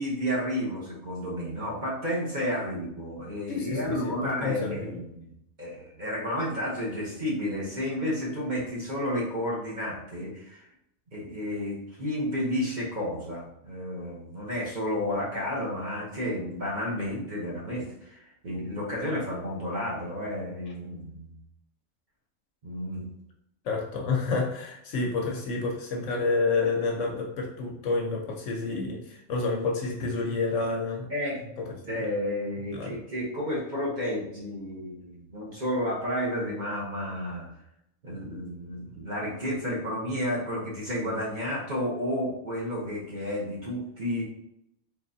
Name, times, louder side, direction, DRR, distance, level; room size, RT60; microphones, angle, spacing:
voice 1, 0.0-5.3 5.6-10.7 11.1-21.4 22.6-23.0 31.1-37.5 38.0-44.2, equal, 40° right, -5 dB, 1.0 m, -31 dB
voice 2, 3.5-5.0 23.6-31.1 31.6-32.0 32.7-33.0, left 3 dB, 65° left, 0 dB, 1.0 m, -29 dB
3.9 x 3.2 x 2.7 m, 0.79 s
omnidirectional pair, 1.5 m